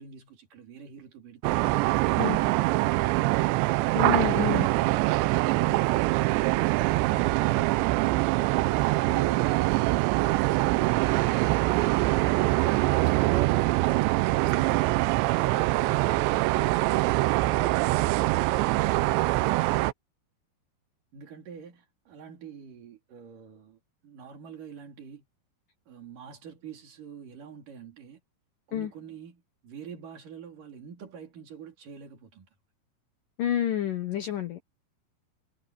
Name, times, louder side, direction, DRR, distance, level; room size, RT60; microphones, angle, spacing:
voice 1, 0.0-1.6 1.9-3.4 5.3-8.1 8.6-12.1 12.7-17.0 18.2-19.7 21.1-25.2 25.9-28.2 28.7-32.5, right 7 dB, 50° right, 4.5 m, -45 dB
sound 1, 1.4-19.9, right 19 dB, 80° right, 2.8 m, -24 dB
voice 2, 4.0-4.7 28.7-28.9 33.4-34.6, left 11 dB, 65° left, 2.2 m, -28 dB
omnidirectional pair, 5.4 m